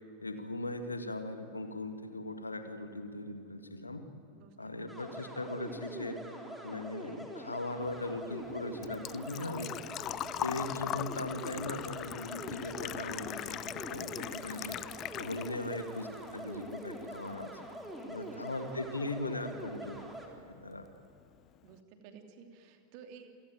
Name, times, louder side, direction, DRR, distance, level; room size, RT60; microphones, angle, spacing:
voice 1, 0.2-4.1 4.6-6.2 6.6-9.7 10.4-14.8 15.2-17.5 18.1-20.0 20.5-20.9, left 2 dB, 80° left, 8 dB, 1.9 m, -39 dB
voice 2, 4.3-4.7 11.3-11.4 18.0-18.4 21.6-23.3, right 6 dB, 45° right, 5 dB, 2.8 m, -53 dB
sound 1, 4.9-20.3, right 1 dB, 5° right, 3.7 m, -44 dB
Engine / Trickle dribble / Fill (with liquid), 7.9-15.8 16.1-17.1 17.4-17.5 19.4-19.5 19.7-20.0 20.4-20.5 20.7-20.8, left 12 dB, 35° left, 0.6 m, -40 dB
27.5 x 17.0 x 9.2 m, 2.4 s
figure-of-eight pair, 90°, 0 cm